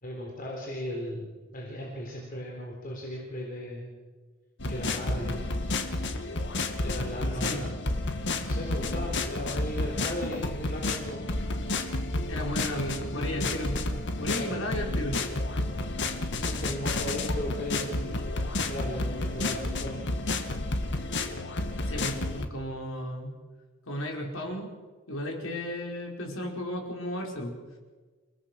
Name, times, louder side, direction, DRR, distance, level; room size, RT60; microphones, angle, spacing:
voice 1, 0.0-3.9 4.7-5.5 6.8-7.7 8.4-11.3 14.3-14.6 16.4-18.2 18.6-20.0, equal, 45° left, -1 dB, 3.8 m, -36 dB
sound 1, 4.6-22.5, left 2 dB, 60° left, 1.8 m, -31 dB
voice 2, 12.3-13.8 14.2-15.2 21.9-23.3 23.9-24.7 25.1-27.5, equal, 80° left, 1 dB, 4.9 m, -34 dB
29.0 x 17.5 x 6.3 m, 1.4 s
head